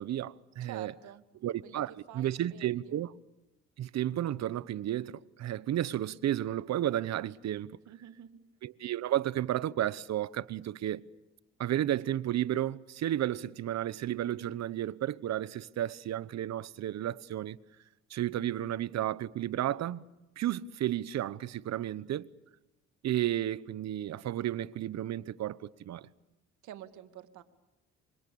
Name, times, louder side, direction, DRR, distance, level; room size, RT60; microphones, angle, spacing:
voice 1, 0.0-0.9 1.4-3.1 3.8-7.8 8.6-11.0 11.6-17.6 18.1-20.1 20.4-22.3 23.0-26.1, right 12 dB, 65° right, 1.0 m, -32 dB
voice 2, 0.6-1.2 1.6-1.8 2.1-3.0 7.9-8.3 26.6-27.4, right 12 dB, 80° right, 2.2 m, -48 dB
28.0 x 25.0 x 7.1 m
cardioid pair, 85°, 29 cm